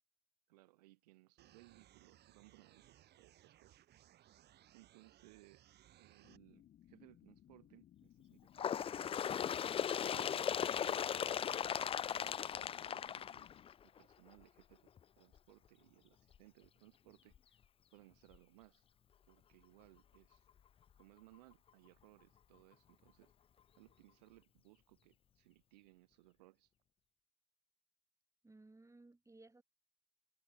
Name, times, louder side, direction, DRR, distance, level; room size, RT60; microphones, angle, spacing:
voice 1, 0.5-3.8 4.7-9.4 10.0-13.5 13.8-17.6 17.9-18.9 19.3-20.5 21.0-23.3 23.8-26.7, right 19 dB, 80° right, 1.3 m, -65 dB
sound 1, 1.4-6.4, right 12 dB, 55° right, 3.6 m, -65 dB
sound 2, 6.2-13.7, left 11 dB, 50° left, 1.4 m, -64 dB
Bird, 8.6-14.0 14.9-15.0 15.4-15.5 16.3-16.4 17.3-17.4 18.3-18.4, left 8 dB, 30° left, 0.4 m, -37 dB
voice 2, 28.4-29.6, right 2 dB, 15° right, 5.9 m, -60 dB
hypercardioid pair, 65°, 20 cm